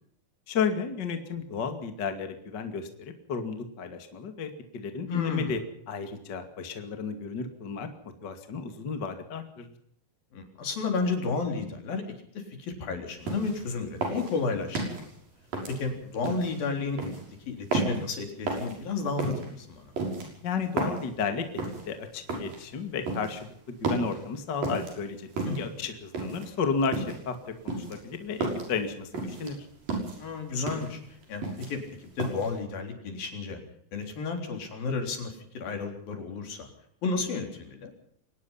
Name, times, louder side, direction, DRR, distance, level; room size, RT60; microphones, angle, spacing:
voice 1, 0.5-5.6 5.9-7.9 8.2-9.7 20.4-21.6 21.9-27.4 27.6-29.5, left 5 dB, 35° left, 7 dB, 2.4 m, -33 dB
voice 2, 5.1-5.5 10.3-12.0 12.4-15.1 15.7-17.0 17.5-19.9 25.5-25.7 30.2-31.0 31.3-31.8 32.2-33.6 33.9-36.7 37.0-37.9, left 4 dB, 70° left, 4 dB, 5.5 m, -32 dB
sound 1, 13.3-13.6 14.0-15.1 15.5-16.5 17.0-17.2 17.7-18.1 18.5-18.8 19.2-19.5 20.0-21.1 21.6-21.9 22.3-22.6 23.1-23.4 23.8-24.2 24.6-24.9 25.4-25.7 26.1-26.5 26.9-27.3 27.7-28.7 29.1-29.5 29.9-30.2 30.6-30.9 31.2-31.9 32.2-32.5, right 2 dB, 65° right, 7.8 m, -32 dB
24.0 x 19.0 x 5.7 m, 0.66 s
omnidirectional pair, 4.3 m